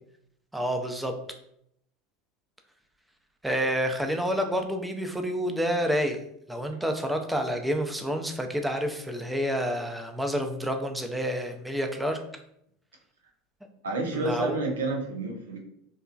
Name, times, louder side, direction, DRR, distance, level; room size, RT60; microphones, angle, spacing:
voice 1, 0.5-1.1 3.4-6.2 6.5-12.2 14.1-14.6, equal, 5° right, 5 dB, 0.4 m, -28 dB
voice 2, 13.8-15.6, right 2 dB, 85° right, 1 dB, 0.6 m, -29 dB
2.9 x 2.3 x 2.4 m, 0.73 s
hypercardioid pair, 85°, 0 cm